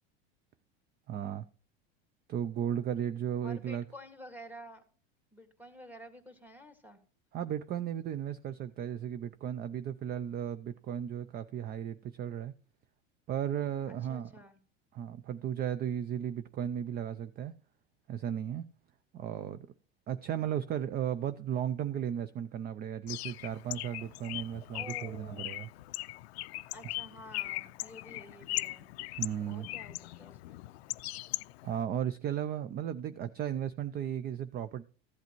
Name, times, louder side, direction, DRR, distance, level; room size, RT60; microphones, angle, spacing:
voice 1, 1.1-1.5 2.3-3.8 7.3-12.5 13.3-14.3 14.9-17.5 18.1-18.7 19.1-19.7 20.1-25.7 29.2-29.7 31.6-34.8, right 9 dB, 30° right, 0.5 m, -35 dB
voice 2, 3.4-4.8 5.3-7.0 13.9-14.6 24.7-25.5 26.7-28.9 29.5-30.6, equal, 5° right, 1.8 m, -50 dB
Bird, 23.1-31.8, left 19 dB, 80° left, 0.5 m, -40 dB
14.5 x 8.0 x 3.0 m
hypercardioid pair, 100°, 32 cm